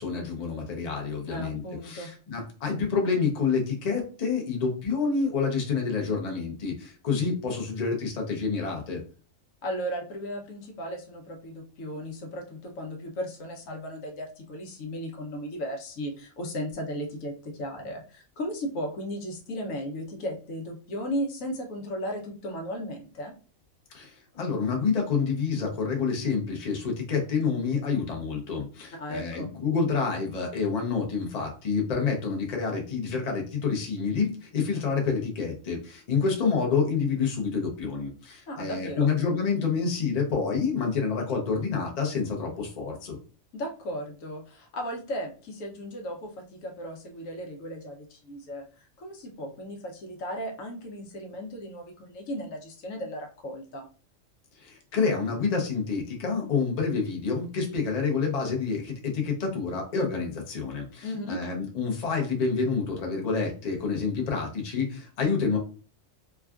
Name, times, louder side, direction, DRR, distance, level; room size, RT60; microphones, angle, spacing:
voice 1, 0.0-9.0 23.9-43.2 54.6-65.6, left 5 dB, 40° left, 0 dB, 0.6 m, -28 dB
voice 2, 1.3-2.1 9.6-23.3 29.0-29.5 38.5-39.1 43.5-48.6 49.0-53.9 61.0-61.4, equal, 75° left, 2 dB, 1.1 m, -35 dB
3.4 x 2.3 x 2.3 m, 0.38 s
omnidirectional pair, 1.4 m